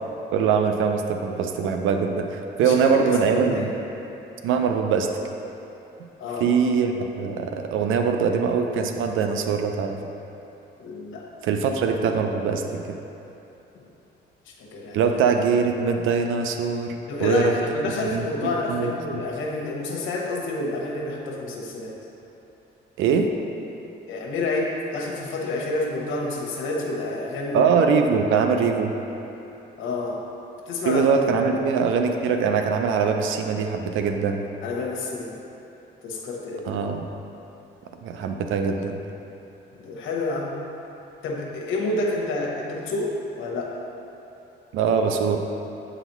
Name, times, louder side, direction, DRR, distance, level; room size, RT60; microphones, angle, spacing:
voice 1, 0.3-3.7 4.4-5.1 6.4-10.0 11.4-12.8 14.9-17.5 18.1-18.2 18.7-18.9 23.0-23.3 27.5-28.9 30.9-34.4 36.7-37.0 38.0-39.0 44.7-45.4, right 5 dB, 85° right, 5 dB, 0.5 m, -22 dB
voice 2, 2.6-3.7 6.2-6.5 10.8-11.2 13.7-13.9 14.5-15.0 17.1-21.9 24.1-27.7 29.8-30.2 30.7-31.0 31.5-31.6 34.6-35.4 36.0-36.7 39.7-40.6 41.2-43.8, left 2 dB, 85° left, -2 dB, 0.9 m, -29 dB
7.8 x 4.0 x 3.0 m, 3.0 s
cardioid pair, 90°, 20 cm